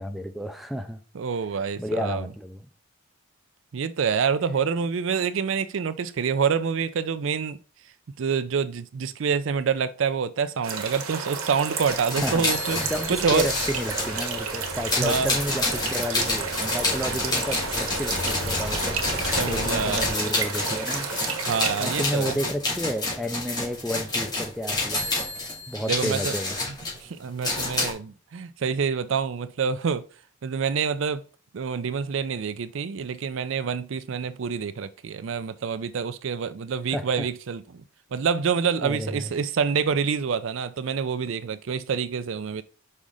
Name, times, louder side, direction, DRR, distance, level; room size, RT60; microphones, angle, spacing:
voice 1, 0.0-1.0 1.8-2.7 12.2-21.1 21.8-25.1 25.7-26.6 36.9-37.3 38.8-39.3, equal, ahead, 0.5 m, -31 dB
voice 2, 1.1-2.2 3.7-7.6 8.2-12.8 13.1-13.5 15.0-15.3 19.4-20.1 21.5-22.4 25.9-26.3 27.0-30.1 30.4-31.2 31.5-37.8 38.1-42.6, right 6 dB, 65° right, 0.4 m, -27 dB
sound 1, 10.6-22.0, right 5 dB, 90° right, 1.3 m, -32 dB
sound 2, 11.9-14.3 14.9-27.9, left 2 dB, 20° left, 2.4 m, -29 dB
sound 3, 12.7-20.1, left 1 dB, 70° left, 2.1 m, -37 dB
5.5 x 4.8 x 3.7 m
head